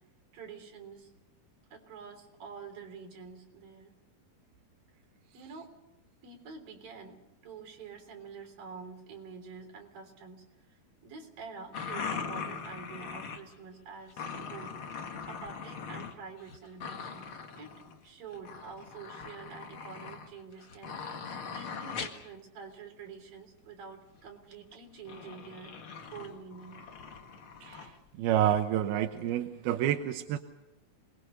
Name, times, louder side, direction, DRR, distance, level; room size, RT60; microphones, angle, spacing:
voice 1, 0.3-1.1 1.7-3.9 5.3-5.8 6.2-14.8 15.3-17.3 17.6-25.7 26.1-26.8, right 5 dB, 65° right, 4 dB, 5.3 m, -47 dB
sound 1, 11.7-13.5 14.1-16.1 16.4-18.0 18.3-22.3 24.1-24.2 25.1-27.9 28.8-28.9 29.1-29.3, left 6 dB, 45° left, 2.2 m, -41 dB
voice 2, 27.6-30.4, right 11 dB, 90° right, 6 dB, 2.9 m, -29 dB
27.0 x 21.0 x 6.6 m, 0.88 s
omnidirectional pair, 4.3 m